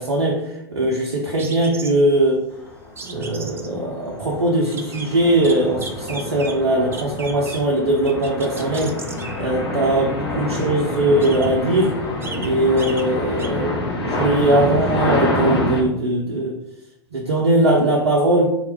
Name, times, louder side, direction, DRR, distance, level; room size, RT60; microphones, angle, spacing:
voice 1, 0.0-2.4 3.0-9.0 9.3-12.0 12.4-13.8 14.0-16.5 17.1-18.5, right 1 dB, 85° right, -2 dB, 0.7 m, -20 dB
sound 1, 1.4-2.1 3.0-3.7 4.6-5.1 5.4-6.6 6.9-7.7 8.0-9.5 10.7-10.8 11.1-11.7 12.0-12.5 12.8-13.1 13.4-13.5, right 4 dB, 20° right, 0.5 m, -35 dB
sound 2, 2.8-3.0 3.5-15.8, left 1 dB, 70° left, 1.1 m, -26 dB
3.6 x 2.4 x 4.5 m, 0.85 s
figure-of-eight pair, 90°, 14 cm